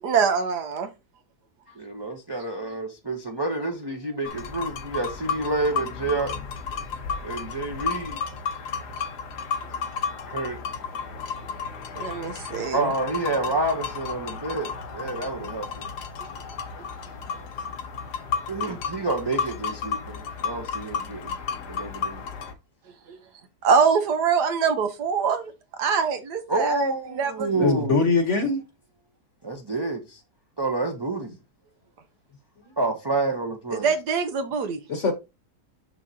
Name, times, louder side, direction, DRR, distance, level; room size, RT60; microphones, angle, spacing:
voice 1, 0.0-0.9 12.0-12.9 23.1-23.2 23.6-25.5 25.8-27.7 33.8-34.8, right 6 dB, 85° right, 1.5 m, -24 dB
voice 2, 1.7-6.4 7.2-8.2 10.3-10.6 12.7-15.9 18.5-21.4 21.7-22.3 25.2-25.3 26.5-27.9 29.4-30.2 30.6-31.3 32.8-33.9, right 2 dB, 20° right, 0.7 m, -28 dB
sound 1, 4.2-22.5, left 5 dB, 85° left, 1.5 m, -33 dB
voice 3, 27.5-28.6 34.9-35.1, left 4 dB, 50° left, 1.2 m, -22 dB
6.1 x 6.1 x 2.8 m
omnidirectional pair, 1.7 m